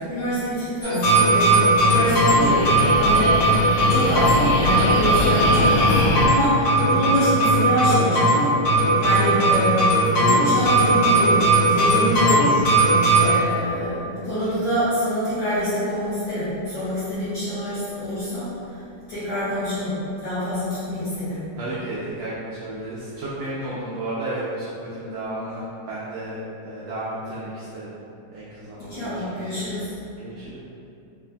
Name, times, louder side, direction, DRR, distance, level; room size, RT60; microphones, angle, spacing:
voice 1, 0.0-3.5 3.9-11.4 11.7-18.5 19.1-20.0 20.2-21.4 28.8-29.9, equal, 70° left, -14 dB, 1.4 m, -26 dB
sound 1, 0.8-13.3, right 1 dB, 55° left, 2.4 m, -18 dB
sound 2, 1.6-6.3, left 2 dB, 85° left, 2.1 m, -25 dB
voice 2, 21.6-27.9 28.3-29.6 30.2-30.6, right 1 dB, 85° right, -8 dB, 1.5 m, -33 dB
5.2 x 2.5 x 2.2 m, 2.7 s
omnidirectional pair, 3.6 m